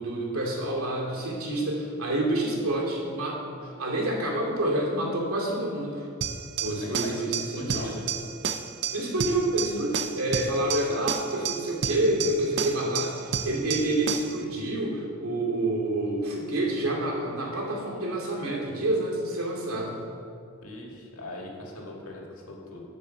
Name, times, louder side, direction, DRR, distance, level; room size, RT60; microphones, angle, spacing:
voice 1, 0.0-6.1 6.6-7.9 8.9-20.0, right 1 dB, 85° right, -2 dB, 2.6 m, -28 dB
sound 1, 6.2-14.4, right 7 dB, 55° right, 0.6 m, -31 dB
voice 2, 6.6-8.0 20.6-22.8, left 2 dB, 85° left, -1 dB, 2.1 m, -40 dB
11.0 x 5.3 x 7.1 m, 2.5 s
head